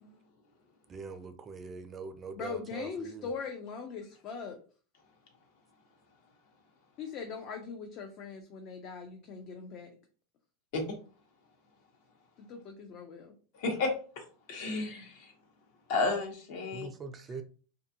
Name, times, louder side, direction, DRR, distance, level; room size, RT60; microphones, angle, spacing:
voice 1, 0.9-3.3 16.7-17.4, right 4 dB, 25° right, 0.3 m, -43 dB
voice 2, 2.3-4.6 7.0-9.9 12.4-13.3, left 5 dB, 45° left, 0.5 m, -41 dB
voice 3, 13.5-14.2 14.5-15.3 15.9-16.9, left 3 dB, 60° left, 1.0 m, -32 dB
2.6 x 2.3 x 2.7 m
supercardioid pair, 130°, 0 cm